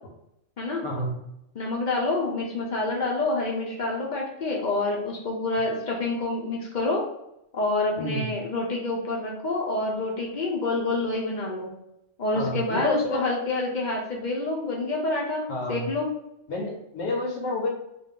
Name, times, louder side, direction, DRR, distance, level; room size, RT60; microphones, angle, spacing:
voice 1, 0.8-1.1 8.0-8.3 12.3-13.2 15.5-15.9 16.5-17.7, left 1 dB, 85° left, 0 dB, 1.0 m, -29 dB
voice 2, 1.5-7.0 7.5-11.7 12.2-16.1, left 2 dB, 60° left, -1 dB, 0.5 m, -27 dB
2.6 x 2.2 x 3.6 m, 0.83 s
omnidirectional pair, 1.3 m